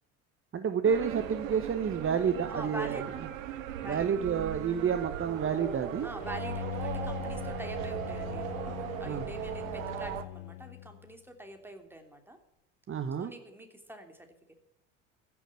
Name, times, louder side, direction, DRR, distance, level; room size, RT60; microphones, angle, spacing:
voice 1, 0.5-3.0 3.8-6.1 9.1-9.2 12.9-13.3, right 7 dB, 30° right, 10 dB, 1.2 m, -29 dB
sound 1, 0.8-10.2, right 10 dB, 85° right, 1.1 m, -38 dB
voice 2, 2.5-3.1 3.8-4.1 6.0-12.4 13.2-14.3, right 1 dB, 5° right, 4 dB, 3.0 m, -45 dB
Bowed string instrument, 6.2-11.1, left 18 dB, 70° left, 0.8 m, -40 dB
15.0 x 7.2 x 9.9 m, 0.86 s
hypercardioid pair, 70°, 39 cm